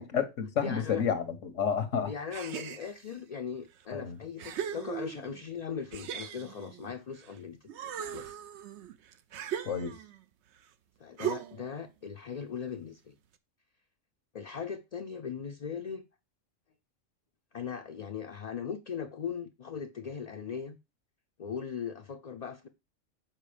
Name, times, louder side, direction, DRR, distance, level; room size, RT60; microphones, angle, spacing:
voice 1, 0.0-2.1 3.9-4.2 9.6-10.0, left 7 dB, 90° left, 1.5 m, -30 dB
voice 2, 0.6-1.0 2.1-7.6 7.8-8.4 11.0-13.1 14.3-16.0 17.5-20.8 21.4-22.7, left 7 dB, 50° left, 0.5 m, -39 dB
sound 1, 2.3-3.2 3.8-3.9 4.4-5.4 5.9-7.3 7.7-10.2 11.2-11.8, right 9 dB, 70° right, 0.9 m, -38 dB
7.3 x 4.8 x 5.0 m
omnidirectional pair, 1.2 m